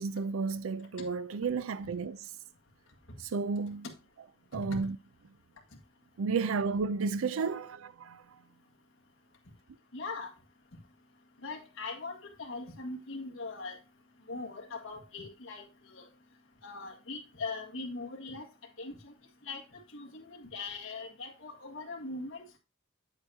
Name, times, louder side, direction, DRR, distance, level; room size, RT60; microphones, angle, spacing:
voice 1, 0.0-2.3 3.2-3.9 4.5-5.0 6.2-8.2, right 4 dB, 75° right, 0.5 m, -32 dB
voice 2, 9.9-10.3 11.4-13.8 14.3-16.0 16.6-18.5 18.8-19.1 19.4-22.6, left 3 dB, 70° left, 1.8 m, -41 dB
8.6 x 8.0 x 2.8 m
head